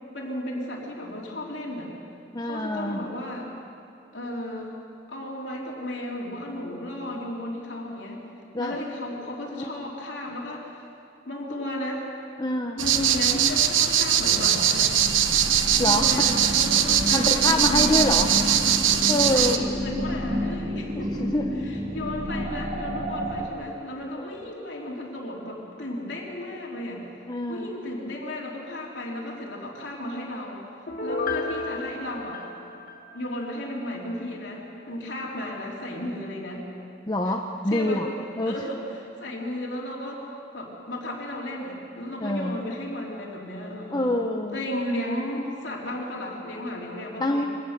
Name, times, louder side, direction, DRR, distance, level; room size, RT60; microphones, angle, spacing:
voice 1, 0.1-1.9 2.4-3.5 4.1-4.8 5.1-8.2 8.6-10.8 11.2-12.1 12.8-14.9 15.8-18.5 19.2-21.1 21.5-27.0 27.5-30.6 31.0-32.4 33.1-36.6 37.2-37.3 37.7-38.0 38.4-40.2 40.5-44.1 44.5-47.5, left 1 dB, 65° left, -3 dB, 3.2 m, -34 dB
voice 2, 2.3-3.0 8.5-8.8 9.6-9.7 12.4-12.8 15.8-16.0 17.1-18.3 19.1-19.6 21.2-21.5 27.3-27.7 37.1-38.1 38.4-38.5 42.2-42.6 43.9-44.6 47.2-47.4, left 1 dB, 20° left, 2 dB, 0.8 m, -25 dB
sound 1, 12.8-19.6, right 9 dB, 80° right, 1.0 m, -21 dB
sound 2, 15.0-23.5, equal, 40° right, 1.8 m, -31 dB
Piano, 30.9-33.6 33.9-34.0, left 3 dB, 45° left, 1.5 m, -32 dB
24.0 x 18.0 x 6.6 m, 2.6 s
head